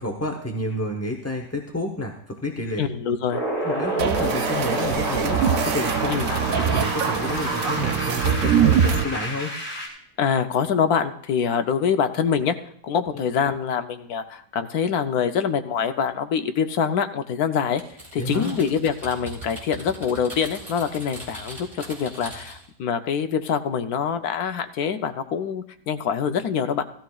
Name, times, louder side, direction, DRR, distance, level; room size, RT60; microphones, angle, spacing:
voice 1, 0.0-2.8 3.6-6.1 6.4-9.5 18.2-18.6, left 1 dB, 15° left, 1 dB, 0.6 m, -30 dB
voice 2, 2.8-3.4 6.1-6.3 10.2-12.6 12.8-17.8 18.1-26.8, left 7 dB, 75° left, 8 dB, 1.2 m, -25 dB
sound 1, 3.3-9.9, equal, 50° left, 4.7 m, -29 dB
sound 2, 4.0-9.0, right 8 dB, 65° right, 1.0 m, -23 dB
Typing, 17.8-22.7, right 1 dB, 20° right, 3.6 m, -40 dB
17.0 x 13.5 x 2.4 m, 0.65 s
omnidirectional pair, 1.7 m